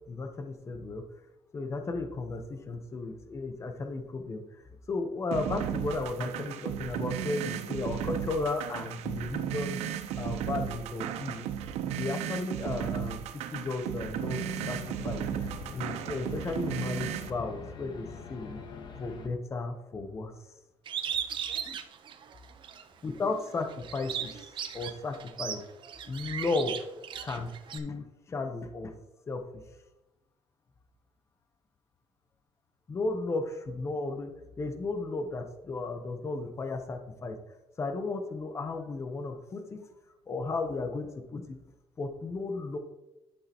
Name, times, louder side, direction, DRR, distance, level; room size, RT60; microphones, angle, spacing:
voice 1, 0.1-1.0 1.5-9.8 10.2-11.5 12.0-13.2 13.5-14.8 15.0-18.6 19.0-20.3 21.6-21.8 23.0-25.6 26.1-26.9 27.2-28.9 29.3-29.4 32.9-34.3 34.6-37.4 37.8-39.8 40.3-41.6 42.0-42.8, left 3 dB, 25° left, 6 dB, 0.8 m, -34 dB
sound 1, 5.3-17.3, right 10 dB, 85° right, 0.7 m, -35 dB
sound 2, 14.3-19.3, left 4 dB, 45° left, 1.2 m, -44 dB
Bird, 20.9-22.8 23.3-27.8, right 8 dB, 50° right, 0.8 m, -37 dB
11.0 x 6.5 x 2.9 m, 0.99 s
cardioid pair, 140°, 11 cm